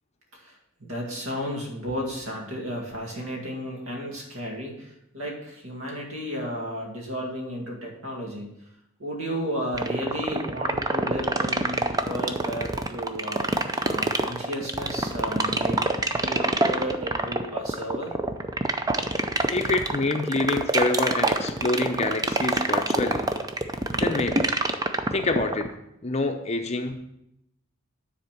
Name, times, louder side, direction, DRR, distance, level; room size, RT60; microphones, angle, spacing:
voice 1, 0.3-8.5 9.0-13.4 13.8-15.8 16.1-18.1 23.9-24.2, equal, 70° right, -1 dB, 2.2 m, -33 dB
sound 1, 9.7-25.7, right 2 dB, 15° right, 0.4 m, -24 dB
voice 2, 19.5-23.3 24.0-24.5 25.1-25.7 26.0-27.0, left 2 dB, 30° left, 5 dB, 0.6 m, -26 dB
9.7 x 4.3 x 5.9 m, 0.81 s
head